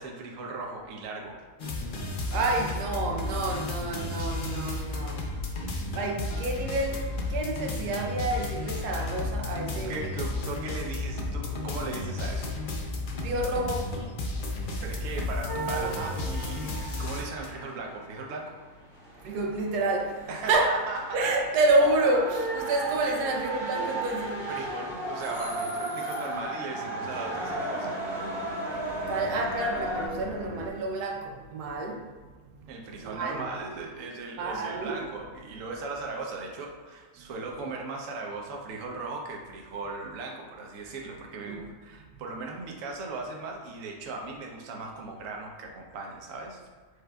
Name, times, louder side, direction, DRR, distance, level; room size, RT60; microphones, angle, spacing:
voice 1, 0.0-1.4 9.7-12.5 14.8-18.5 20.3-21.4 23.0-23.2 23.5-23.6 24.5-27.9 32.7-46.6, right 3 dB, 65° right, 0 dB, 1.0 m, -38 dB
sound 1, 1.6-17.7, left 2 dB, 65° left, 0.5 m, -33 dB
voice 2, 2.1-5.3 5.9-9.9 13.2-13.9 19.2-20.2 20.5-20.8 21.1-24.5 29.1-32.1 33.0-33.4 34.4-35.0 37.2-37.3 41.4-41.6, right 2 dB, 85° right, 1 dB, 1.2 m, -28 dB
sound 2, 15.5-30.1, right 2 dB, 20° left, 0.8 m, -35 dB
sound 3, 25.9-30.7, equal, 35° right, 0.8 m, -42 dB
5.0 x 4.4 x 2.2 m, 1.4 s
omnidirectional pair, 1.6 m